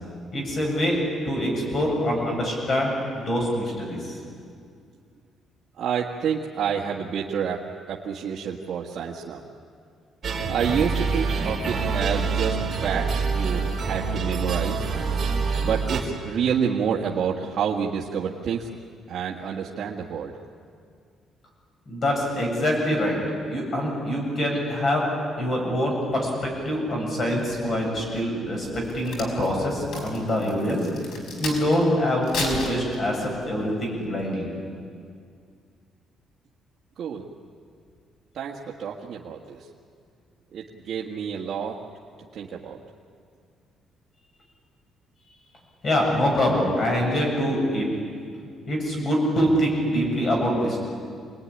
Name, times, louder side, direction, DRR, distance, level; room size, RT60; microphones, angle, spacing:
voice 1, 0.3-4.2 21.9-23.2 23.5-25.0 25.4-30.9 31.4-34.5 45.8-47.9 48.7-50.8, equal, 35° left, 0 dB, 7.7 m, -24 dB
voice 2, 5.8-7.6 7.9-9.5 10.5-12.6 12.8-14.9 15.6-18.7 19.1-20.4 37.0-37.3 38.3-39.6 40.5-41.8 42.3-42.8, right 7 dB, 50° right, -3 dB, 1.7 m, -28 dB
sound 1, 10.2-16.0, right 4 dB, 30° right, 4.1 m, -26 dB
Crack, 28.7-31.8 32.2-33.4 34.0-34.2, left 3 dB, 65° left, 5.2 m, -34 dB
26.5 x 20.0 x 10.0 m, 2.2 s
cardioid pair, 160°, 0 cm